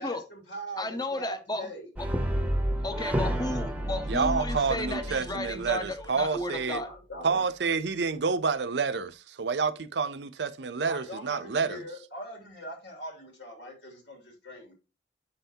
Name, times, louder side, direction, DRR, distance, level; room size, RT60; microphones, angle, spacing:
voice 1, 0.0-1.9 6.7-7.5 10.9-14.7, right 1 dB, 85° left, 2.7 m, -42 dB
voice 2, 0.8-1.7 2.8-6.9, left 2 dB, 25° left, 1.0 m, -33 dB
Brass instrument, 2.0-6.2, right 1 dB, 10° right, 0.9 m, -31 dB
voice 3, 4.1-6.8 7.2-11.8, right 5 dB, 75° right, 0.6 m, -29 dB
7.7 x 5.7 x 2.8 m
head